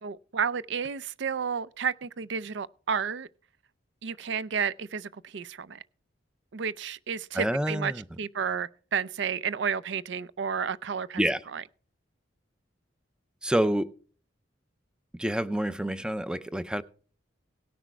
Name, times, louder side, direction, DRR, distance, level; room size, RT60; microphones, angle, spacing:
voice 1, 0.0-3.3 4.0-5.8 6.5-7.9 8.2-11.2 11.5-11.6, right 6 dB, 65° right, 0.5 m, -31 dB
voice 2, 7.3-8.0 11.2-11.4 13.4-13.9 15.2-16.8, right 1 dB, 5° right, 0.4 m, -27 dB
18.0 x 6.2 x 4.5 m
head